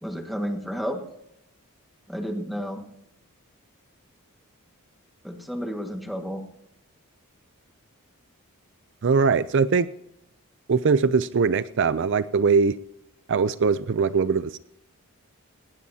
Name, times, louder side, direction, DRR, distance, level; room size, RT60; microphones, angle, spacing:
voice 1, 0.0-1.0 2.1-2.8 5.2-6.4, equal, ahead, 3 dB, 1.7 m, -31 dB
voice 2, 9.0-9.9 10.7-12.8 13.3-14.6, right 5 dB, 55° right, 15 dB, 0.4 m, -21 dB
19.5 x 18.5 x 2.8 m, 0.80 s
head